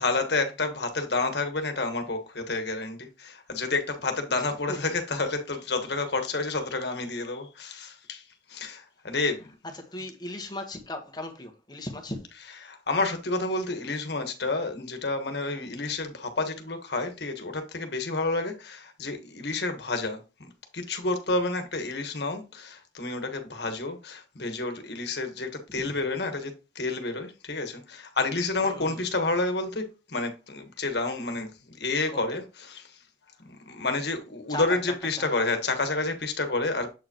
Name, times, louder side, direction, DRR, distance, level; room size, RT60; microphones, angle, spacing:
voice 1, 0.0-8.2 8.5-9.5 12.6-29.8 30.1-32.9 33.4-36.9, left 3 dB, 65° left, 1.3 m, -30 dB
voice 2, 9.6-12.2 25.7-26.0 28.6-29.1 32.1-32.4 34.5-35.4, left 1 dB, 20° left, 1.2 m, -38 dB
7.7 x 4.9 x 3.0 m
head